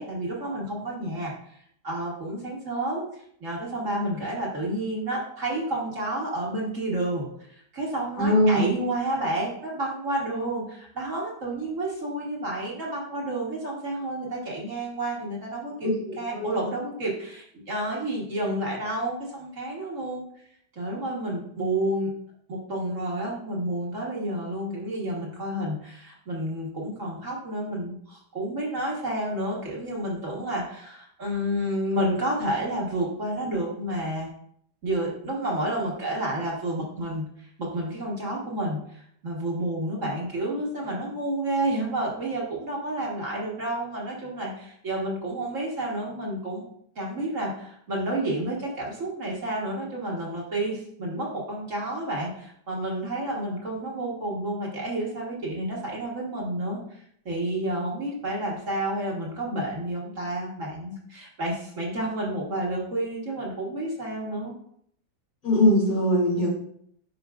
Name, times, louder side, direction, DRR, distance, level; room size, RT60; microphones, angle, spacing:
voice 1, 0.0-1.6 1.8-3.1 3.4-15.9 16.2-20.2 20.7-22.1 22.5-34.3 34.8-46.7 47.0-64.5, right 1 dB, 45° right, -3 dB, 1.8 m, -30 dB
voice 2, 8.2-8.7 15.8-16.1 16.4-16.5 65.4-66.5, left 1 dB, 60° left, -5 dB, 3.0 m, -21 dB
10.5 x 4.8 x 2.5 m, 0.67 s
omnidirectional pair, 1.9 m